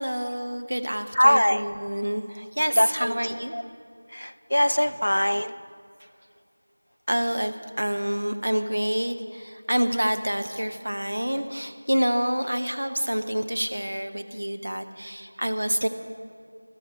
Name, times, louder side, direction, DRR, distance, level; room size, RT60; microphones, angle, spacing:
voice 1, 0.0-3.5 4.8-5.0 6.0-6.1 7.1-15.9, equal, 50° right, 7 dB, 1.1 m, -27 dB
voice 2, 1.2-1.6 2.8-3.1 3.5-3.6 4.1-5.5, equal, 85° left, 13 dB, 0.6 m, -21 dB
15.5 x 13.5 x 6.3 m, 2.2 s
figure-of-eight pair, 180°, 0 cm